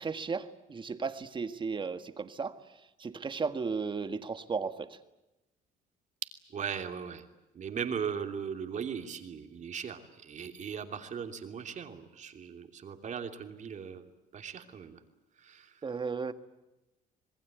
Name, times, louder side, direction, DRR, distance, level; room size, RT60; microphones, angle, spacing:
voice 1, 0.0-2.5 3.0-5.0 15.8-16.3, right 5 dB, 30° right, 10 dB, 1.7 m, -35 dB
voice 2, 6.5-7.2 7.5-14.1 14.3-15.0 15.4-15.7, right 7 dB, 45° right, 6 dB, 3.0 m, -38 dB
27.0 x 20.0 x 9.4 m, 0.99 s
cardioid pair, 110°, 17 cm